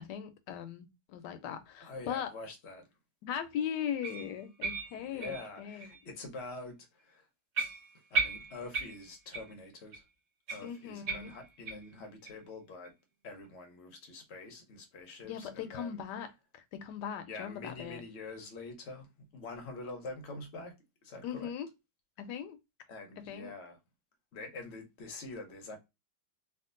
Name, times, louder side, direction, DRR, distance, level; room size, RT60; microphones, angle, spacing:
voice 1, 0.0-2.3 3.2-5.9 10.6-11.3 15.2-16.3 16.7-18.0 21.2-21.7 22.2-22.6 23.2-23.5, left 9 dB, 75° left, 1.2 m, -39 dB
voice 2, 1.8-2.8 4.9-7.3 8.1-10.0 10.5-12.9 13.2-16.0 17.3-19.1 19.3-20.7 21.0-21.5 22.9-23.8 24.3-25.8, left 3 dB, 55° left, 0.8 m, -45 dB
sound 1, 4.0-6.0 6.4-6.6 7.0-7.1 7.5-9.6 9.9-10.0 10.5-11.9 12.2-12.4 12.8-12.9 13.4-13.5, right 3 dB, 65° right, 1.7 m, -37 dB
3.5 x 2.4 x 2.4 m
omnidirectional pair, 2.0 m